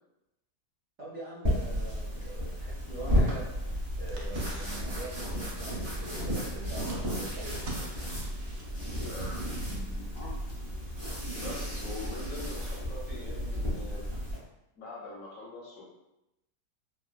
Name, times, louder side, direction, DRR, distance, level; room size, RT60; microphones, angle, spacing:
voice 1, 1.0-7.5, right 2 dB, 55° right, -8 dB, 0.8 m, -44 dB
sound 1, 1.4-14.4, equal, 25° right, 0.6 m, -33 dB
sound 2, 3.5-9.1, right 2 dB, 85° right, 0.6 m, -51 dB
voice 2, 9.0-10.3 11.4-14.2 14.7-15.8, left 2 dB, 65° left, -6 dB, 0.9 m, -43 dB
3.5 x 2.1 x 2.3 m, 0.90 s
omnidirectional pair, 1.8 m